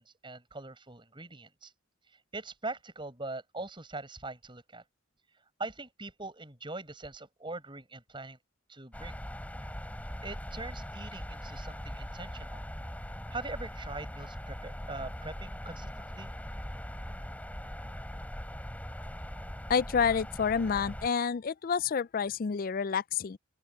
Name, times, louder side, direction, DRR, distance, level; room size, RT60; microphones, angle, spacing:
voice 1, 0.0-1.7 2.1-4.8 5.6-8.4 8.7-9.2 10.2-12.7 13.3-16.3, right 2 dB, 25° right, 7.0 m, -42 dB
sound 1, 8.9-21.1, equal, 10° left, 3.1 m, -41 dB
voice 2, 19.7-23.4, left 6 dB, 45° left, 0.4 m, -29 dB
open air
head